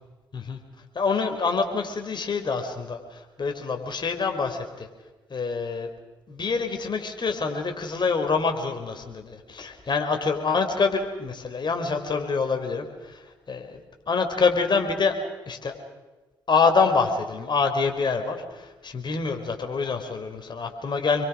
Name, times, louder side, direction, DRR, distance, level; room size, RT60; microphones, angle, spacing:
voice 1, 0.9-4.9 5.3-5.9 6.3-13.8 14.1-15.2 15.5-15.7 16.5-21.3, left 4 dB, 45° left, 5 dB, 5.1 m, -26 dB
28.0 x 23.5 x 6.4 m, 1.2 s
hypercardioid pair, 45°, 11 cm